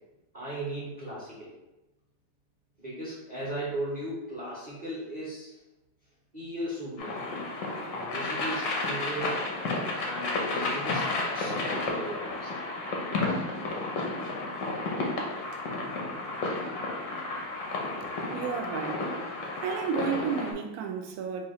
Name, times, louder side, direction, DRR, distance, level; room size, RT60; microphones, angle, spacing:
voice 1, 0.3-1.5 2.8-5.6 6.3-7.2 7.9-9.5 10.0-12.5, right 1 dB, 30° right, 1.0 m, -37 dB
sound 1, 7.0-20.5, left 2 dB, 65° left, 0.9 m, -32 dB
voice 2, 18.0-19.1 19.6-21.5, right 6 dB, 75° right, 0.9 m, -32 dB
4.6 x 2.8 x 3.0 m
omnidirectional pair, 2.0 m